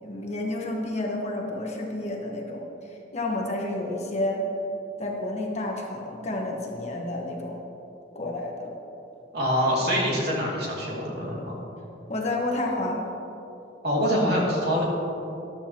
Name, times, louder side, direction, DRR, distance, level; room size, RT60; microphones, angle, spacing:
voice 1, 0.0-4.4 5.0-7.6 8.1-8.7 12.1-13.1, left 2 dB, 35° left, 0 dB, 1.4 m, -30 dB
voice 2, 9.3-11.6 13.8-14.8, equal, 60° right, -4 dB, 2.7 m, -25 dB
14.0 x 12.0 x 3.0 m, 2.9 s
head